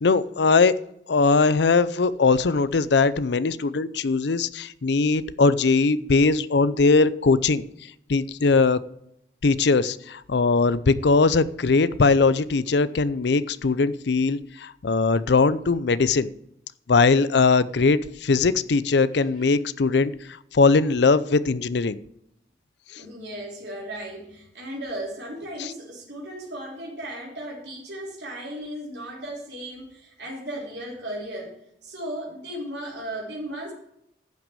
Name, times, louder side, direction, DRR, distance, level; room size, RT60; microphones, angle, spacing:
voice 1, 0.0-0.7 1.1-7.6 8.1-8.8 9.4-16.3 16.9-20.1 20.5-22.0 22.9-23.0 25.6-25.7, left 4 dB, 75° left, 16 dB, 0.5 m, -20 dB
voice 2, 19.1-19.4 23.0-31.6 31.8-33.7, right 1 dB, 70° right, -4 dB, 3.7 m, -36 dB
11.5 x 6.1 x 7.0 m, 0.77 s
head